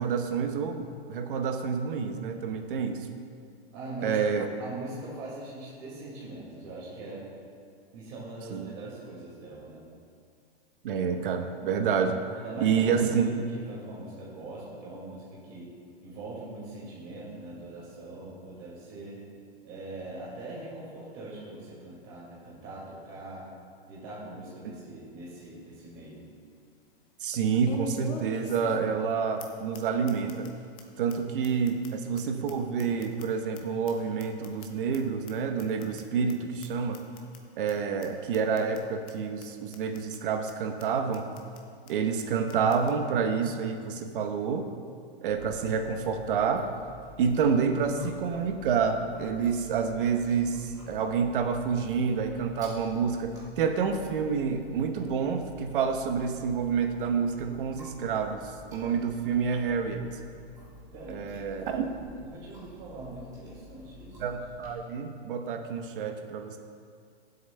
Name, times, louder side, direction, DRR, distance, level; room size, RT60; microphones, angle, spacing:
voice 1, 0.0-3.1 4.0-4.5 8.5-8.7 10.8-12.2 12.6-13.3 24.6-24.7 27.2-30.5 31.0-37.0 37.6-41.3 41.9-44.7 45.2-46.7 47.2-60.0 61.1-61.8 64.2-66.6, right 6 dB, 55° right, 6 dB, 1.0 m, -28 dB
voice 2, 3.7-4.2 4.6-7.3 7.9-9.8 12.4-15.7 16.0-19.2 19.6-23.5 23.8-26.2 60.9-61.8 62.2-64.2, right 2 dB, 35° right, -5 dB, 2.1 m, -42 dB
sound 1, 25.3-25.4 25.9-26.0 27.6-29.1 29.4-29.5 29.7-29.8 30.1-30.5 30.8-30.9 31.1-31.2 31.4-33.6 33.9-35.0 35.3-35.4 35.6-36.0 36.3-36.4 36.6-36.7 36.9-37.4 37.7-37.8 38.0-38.1 38.3-38.8 39.1-39.2 39.4-39.5 39.7-40.2 40.5-40.6 40.8-40.9 41.1-41.6 41.9-42.0 42.2-42.3 42.5-42.9, left 4 dB, 15° left, 0.4 m, -42 dB
Chewing mastication, 45.3-64.7, left 3 dB, 10° right, 2.3 m, -51 dB
20.0 x 7.8 x 2.2 m, 2.3 s
hypercardioid pair, 155°, 32 cm